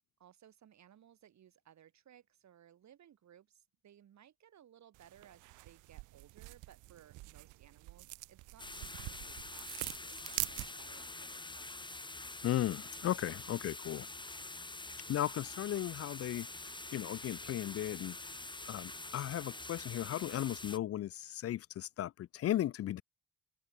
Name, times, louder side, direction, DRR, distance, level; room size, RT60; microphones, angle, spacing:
voice 1, 0.2-11.9, right 10 dB, 65° right, 6.5 m, -62 dB
sound 1, 4.9-11.1, right 20 dB, 90° right, 0.5 m, -45 dB
sound 2, 8.6-20.8, left 2 dB, 15° left, 4.0 m, -46 dB
voice 2, 12.4-14.1 15.1-18.2 18.7-23.0, left 12 dB, 50° left, 0.5 m, -36 dB
cardioid pair, 90°, 30 cm